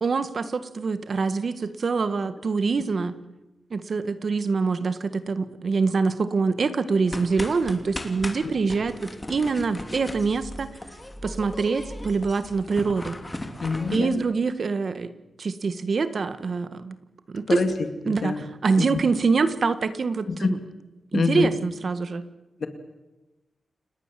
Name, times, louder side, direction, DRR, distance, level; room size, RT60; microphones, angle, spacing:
voice 1, 0.0-3.2 3.7-10.7 11.2-13.2 13.9-15.1 15.4-16.9 17.3-17.6 18.1-20.6 21.1-22.2, right 4 dB, 55° right, 12 dB, 1.7 m, -25 dB
sound 1, 7.0-14.0, left 1 dB, 15° left, 3.1 m, -37 dB
voice 2, 13.6-14.2 17.5-17.7 18.1-18.4 18.8-19.0 20.3-20.5 21.1-21.5 22.6-22.7, left 5 dB, 60° left, 8 dB, 2.4 m, -25 dB
29.5 x 19.0 x 7.7 m, 1.0 s
wide cardioid pair, 130°, 0 cm